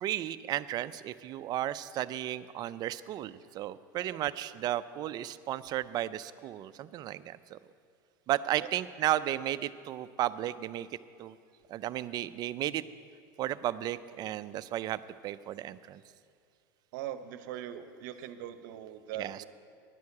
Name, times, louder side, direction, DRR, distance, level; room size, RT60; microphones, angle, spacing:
voice 1, 0.0-7.6 8.3-10.9 11.2-11.4 11.7-12.8 13.4-16.0 19.1-19.4, right 13 dB, 40° right, 15 dB, 0.4 m, -34 dB
voice 2, 16.9-19.5, right 11 dB, 65° right, 11 dB, 0.7 m, -41 dB
10.5 x 6.3 x 8.4 m, 2.3 s
supercardioid pair, 120°, 11 cm